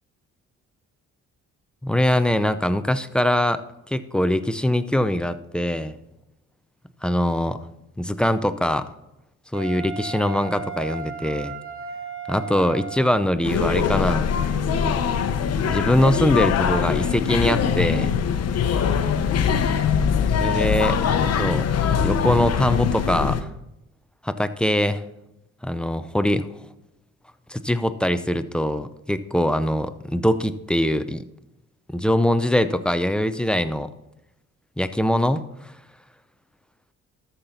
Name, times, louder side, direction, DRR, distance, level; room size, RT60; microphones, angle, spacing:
voice 1, 1.8-6.0 7.0-7.6 8.0-8.9 9.5-11.6 12.3-14.3 14.7-15.1 15.7-18.1 20.4-21.7 22.0-23.5 24.2-25.0 25.6-26.5 27.5-31.2 31.9-33.9 34.8-35.7, left 1 dB, 5° left, 11 dB, 0.5 m, -23 dB
Wind instrument woodwind instrument, 9.5-13.3, right 5 dB, 45° right, 1.0 m, -35 dB
sound 1, 13.4-23.4, left 7 dB, 55° left, 0.9 m, -22 dB
13.0 x 5.9 x 4.1 m, 0.90 s
cardioid pair, 90°, 30 cm